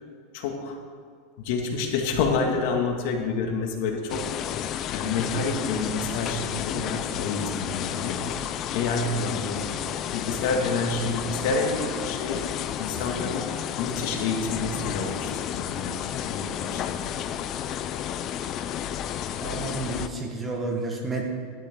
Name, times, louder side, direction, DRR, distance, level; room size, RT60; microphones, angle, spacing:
voice 1, 0.3-0.8 1.4-4.3 4.5-8.2 8.7-9.9 10.1-12.4 12.8-13.5 13.8-17.1, left 4 dB, 60° left, 2 dB, 2.0 m, -28 dB
sound 1, 4.1-20.1, left 10 dB, 35° left, 0.5 m, -31 dB
voice 2, 19.4-21.2, right 3 dB, 15° right, 1 dB, 1.4 m, -30 dB
15.0 x 12.0 x 3.8 m, 2.3 s
supercardioid pair, 160°, 0 cm